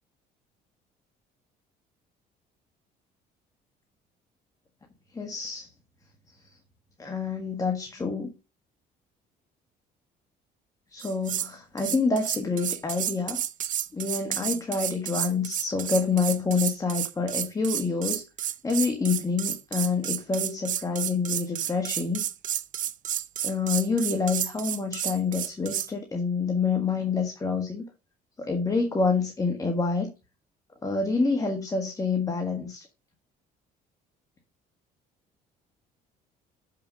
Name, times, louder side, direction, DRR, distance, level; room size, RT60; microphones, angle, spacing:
voice 1, 5.1-5.7 6.3-6.6 7.0-8.3 10.9-13.4 13.9-22.2 23.4-27.8 28.4-30.1 30.8-32.9, left 4 dB, 20° left, 1.6 m, -27 dB
sound 1, 11.0-11.5 11.8-25.9, right 11 dB, 50° right, 0.7 m, -31 dB
7.0 x 5.9 x 5.2 m
cardioid pair, 110°, 17 cm